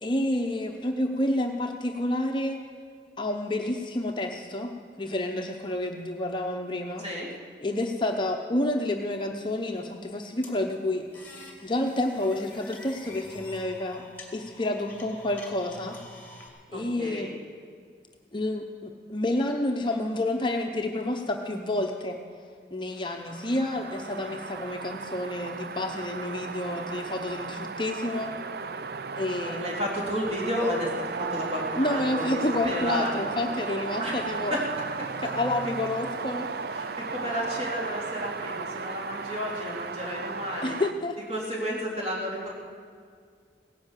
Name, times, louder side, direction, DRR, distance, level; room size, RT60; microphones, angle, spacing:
voice 1, 0.0-2.6 3.2-4.7 5.0-7.0 7.6-11.1 11.6-14.1 14.3-16.0 16.7-17.3 18.3-22.2 22.7-28.3 29.2-29.7 31.8-34.6 35.2-36.5 40.6-41.2, left 1 dB, 25° left, 3 dB, 0.7 m, -29 dB
sound 1, 10.4-16.5, left 1 dB, 10° left, 2.2 m, -47 dB
voice 2, 16.7-17.3 29.5-33.1 34.0-34.6 35.6-35.7 36.7-40.8 41.3-42.5, equal, 30° right, -4 dB, 3.3 m, -32 dB
sound 2, 23.0-40.9, right 5 dB, 60° right, 0.5 m, -35 dB
17.0 x 10.5 x 7.4 m, 2.1 s
head